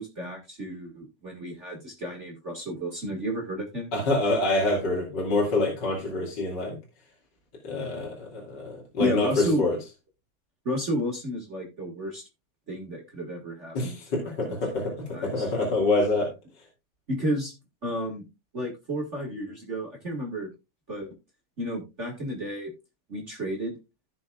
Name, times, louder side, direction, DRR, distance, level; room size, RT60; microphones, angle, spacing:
voice 1, 0.0-3.9 9.0-9.6 10.6-12.2 12.7-14.0 14.5-14.6 15.1-15.4 17.1-17.5 17.8-18.2 18.5-20.5 20.9-21.1 21.6-22.7 23.1-23.7, equal, 55° right, 0 dB, 0.7 m, -32 dB
voice 2, 3.9-6.8 7.6-9.8 13.7-16.3, left 2 dB, 30° left, -2 dB, 2.5 m, -26 dB
15.5 x 6.2 x 2.3 m, 0.25 s
omnidirectional pair, 4.5 m